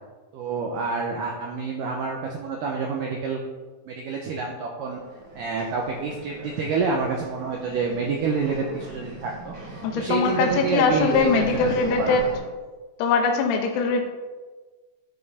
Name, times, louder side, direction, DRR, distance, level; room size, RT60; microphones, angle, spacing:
voice 1, 0.3-3.4 3.9-5.0 5.4-11.7 12.0-12.2, right 4 dB, 80° right, 0 dB, 1.9 m, -28 dB
sound 1, 4.9-12.4, right 2 dB, 45° right, 1.7 m, -39 dB
voice 2, 9.8-12.3 13.0-14.0, left 4 dB, 80° left, 3 dB, 2.9 m, -22 dB
10.5 x 5.3 x 4.2 m, 1.3 s
omnidirectional pair, 4.8 m